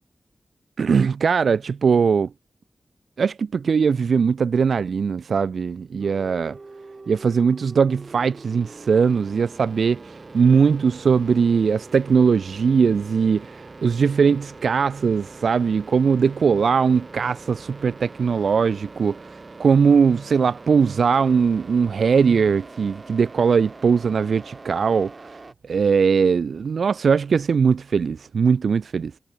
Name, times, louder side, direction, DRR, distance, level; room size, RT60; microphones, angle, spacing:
voice 1, 0.8-2.3 3.2-6.6 7.1-19.3 19.6-25.3 25.6-29.1, right 6 dB, 85° right, 1.5 m, -20 dB
sound 1, 6.0-25.5, right 3 dB, 35° right, 5.7 m, -43 dB
wide cardioid pair, 125°, 0 cm